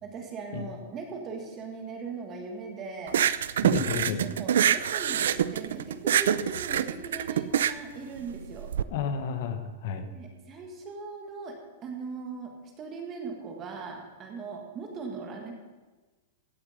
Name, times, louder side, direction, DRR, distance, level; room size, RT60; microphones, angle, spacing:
voice 1, 0.0-3.3 4.2-8.7 10.0-12.5 12.8-15.6, right 4 dB, 20° right, 2 dB, 1.9 m, -39 dB
sound 1, 3.1-8.8, right 9 dB, 85° right, 0.5 m, -25 dB
voice 2, 3.6-4.2 8.9-10.1, left 6 dB, 45° left, 9 dB, 1.2 m, -31 dB
16.0 x 8.6 x 5.2 m, 1.3 s
supercardioid pair, 175°, 0 cm